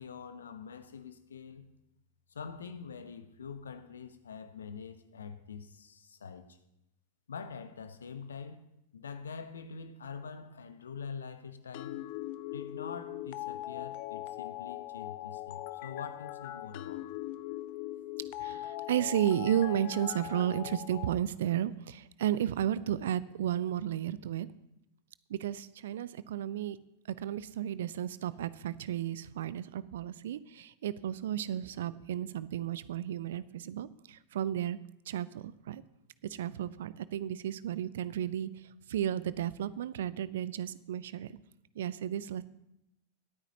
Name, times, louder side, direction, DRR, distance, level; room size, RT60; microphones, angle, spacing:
voice 1, 0.0-1.7 2.3-6.6 7.3-8.6 8.9-12.0 12.5-17.2, left 6 dB, 70° left, 11 dB, 0.9 m, -45 dB
sound 1, 11.7-21.1, left 15 dB, 45° left, 0.5 m, -40 dB
voice 2, 18.4-24.5 25.3-26.8 27.1-34.8 35.1-35.8 36.2-38.5 38.9-41.4 41.8-42.4, right 11 dB, 60° right, 18 dB, 0.4 m, -33 dB
22.0 x 9.0 x 2.8 m, 0.85 s
figure-of-eight pair, 90°, 0 cm